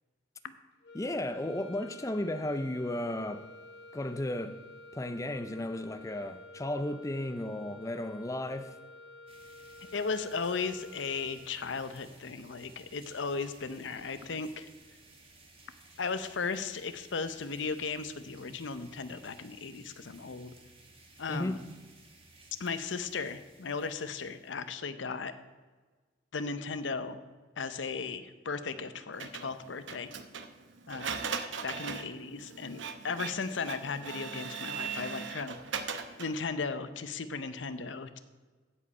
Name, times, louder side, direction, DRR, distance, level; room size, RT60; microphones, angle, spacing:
sound 1, 0.8-11.7, left 2 dB, 65° left, 1.0 m, -51 dB
voice 1, 0.9-3.5 3.9-4.6 4.9-8.8 21.3-21.6, left 1 dB, 15° left, 0.5 m, -34 dB
sound 2, 9.3-24.8, right 2 dB, 30° right, 1.6 m, -58 dB
voice 2, 9.9-14.7 16.0-20.5 21.2-21.6 22.6-25.3 26.3-27.2 27.6-30.1 30.9-31.2 31.6-35.5 36.2-38.2, left 4 dB, 85° left, 0.7 m, -36 dB
Printer, 29.2-36.4, right 6 dB, 85° right, 0.8 m, -39 dB
15.5 x 5.2 x 5.5 m
head